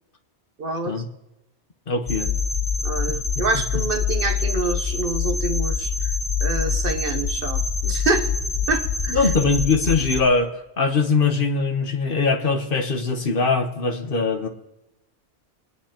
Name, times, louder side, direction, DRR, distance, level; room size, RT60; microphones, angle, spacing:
voice 1, 0.6-0.9 2.8-5.9 6.4-8.3 8.7-9.3, right 3 dB, 55° right, 6 dB, 1.0 m, -26 dB
voice 2, 1.9-2.3 9.1-10.5 10.8-14.5, left 4 dB, 50° left, 5 dB, 1.2 m, -21 dB
sound 1, 2.1-10.2, left 5 dB, 35° left, 1.0 m, -25 dB
23.5 x 9.7 x 2.9 m, 0.98 s
omnidirectional pair, 1.2 m